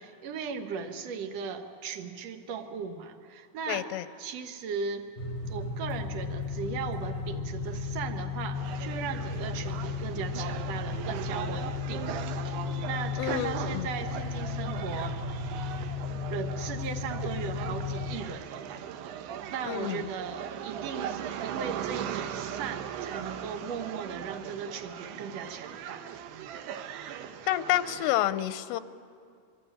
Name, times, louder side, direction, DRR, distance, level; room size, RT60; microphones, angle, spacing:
voice 1, 0.0-3.9 4.2-5.1 5.5-12.3 12.8-15.2 16.3-18.8 19.5-26.1 27.2-27.3, right 6 dB, 60° right, 5 dB, 1.9 m, -37 dB
voice 2, 3.7-4.1 13.2-13.9 19.6-20.1 27.5-28.8, left 14 dB, 90° left, 13 dB, 2.9 m, -29 dB
sound 1, 5.2-18.2, left 5 dB, 45° right, 1.6 m, -35 dB
sound 2, 8.5-28.1, right 9 dB, 85° right, 3.0 m, -39 dB
24.5 x 24.0 x 9.1 m, 2.3 s
omnidirectional pair, 4.7 m